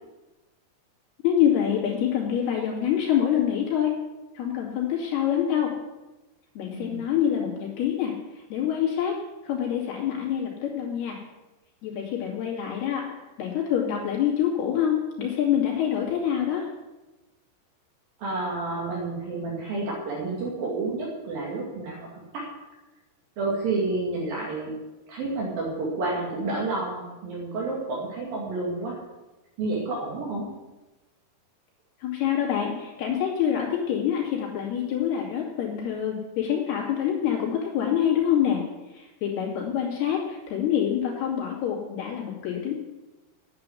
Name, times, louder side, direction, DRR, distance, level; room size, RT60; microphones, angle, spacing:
voice 1, 1.2-3.9 4.3-5.7 6.6-8.1 8.5-9.2 9.4-11.2 11.8-13.1 13.4-16.7 32.0-38.6 38.9-42.7, left 9 dB, 80° left, -3 dB, 4.5 m, -26 dB
voice 2, 6.7-7.1 18.2-22.1 22.3-22.4 23.4-24.7 25.1-29.0 29.6-30.5, right 3 dB, 65° right, -4 dB, 3.9 m, -30 dB
9.5 x 8.9 x 9.8 m, 1.1 s
omnidirectional pair, 4.5 m